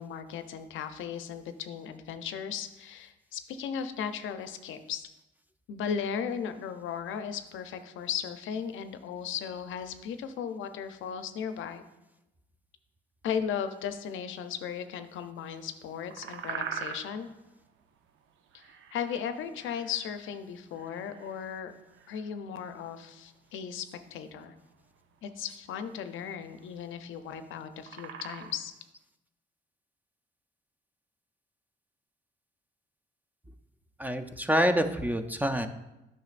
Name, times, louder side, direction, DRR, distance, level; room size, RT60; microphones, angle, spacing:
voice 1, 0.0-5.1 5.7-11.8 13.2-17.3 18.5-18.6 18.9-21.7 22.1-24.5 25.2-28.7, left 7 dB, 80° left, 9 dB, 0.6 m, -36 dB
sound 1, 15.7-28.7, right 7 dB, 80° right, 0.6 m, -44 dB
voice 2, 34.0-35.7, equal, 10° right, 8 dB, 0.4 m, -27 dB
9.1 x 5.7 x 2.5 m, 0.97 s
cardioid pair, 90°, 20 cm